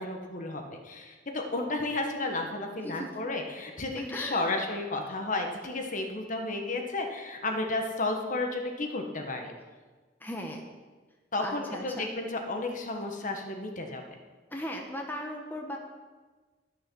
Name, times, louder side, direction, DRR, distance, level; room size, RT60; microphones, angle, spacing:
voice 1, 0.0-9.5 11.3-14.0, left 2 dB, 45° left, 3 dB, 1.3 m, -32 dB
voice 2, 4.0-4.5 10.2-10.6 11.4-12.1 14.5-15.8, equal, 10° left, 1 dB, 1.1 m, -37 dB
12.5 x 6.8 x 6.2 m, 1.3 s
head